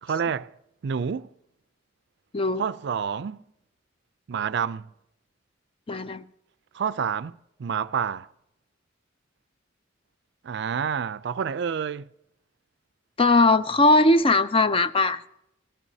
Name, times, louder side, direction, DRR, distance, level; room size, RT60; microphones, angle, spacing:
voice 1, 0.0-0.5 0.8-1.3 2.6-3.4 4.3-4.9 6.7-8.3 10.4-12.1, right 7 dB, 60° right, 0.4 m, -28 dB
voice 2, 5.9-6.2 13.2-15.2, left 2 dB, 30° left, 0.5 m, -19 dB
18.5 x 15.5 x 2.8 m
head